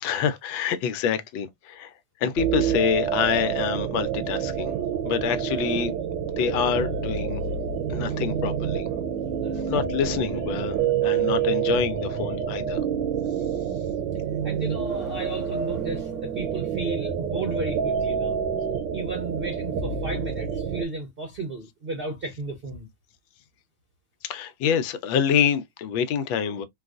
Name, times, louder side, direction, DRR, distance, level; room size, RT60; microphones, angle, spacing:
voice 1, 0.0-1.9 2.2-4.7 5.0-5.9 6.4-7.4 7.9-8.9 9.6-12.8 24.2-26.6, left 8 dB, 85° left, 1.4 m, -26 dB
sound 1, 2.4-20.8, right 7 dB, 75° right, 1.3 m, -28 dB
Car / Accelerating revving vroom, 14.1-16.4, left 1 dB, ahead, 0.7 m, -49 dB
voice 2, 14.4-18.4 18.9-22.9, right 3 dB, 45° right, 0.7 m, -33 dB
3.9 x 2.3 x 2.4 m
omnidirectional pair, 2.1 m